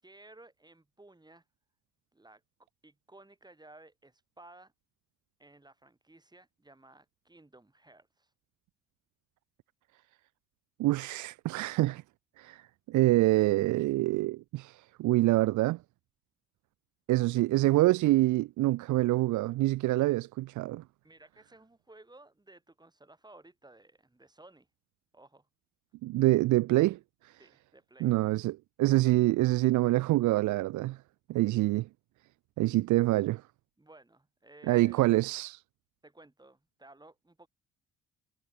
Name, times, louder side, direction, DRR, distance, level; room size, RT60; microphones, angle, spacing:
voice 1, 0.0-1.4 2.1-2.4 2.8-4.7 5.4-8.3 21.0-24.7 25.1-25.5 27.4-28.1 33.8-35.0 36.0-37.5, right 2 dB, 15° right, 6.6 m, -56 dB
voice 2, 10.8-12.0 12.4-12.6 12.9-15.8 17.1-20.8 26.0-27.3 28.0-31.0 31.3-31.9 32.6-33.4 34.7-35.6, right 18 dB, 75° right, 0.5 m, -26 dB
cardioid pair, 90°, 30 cm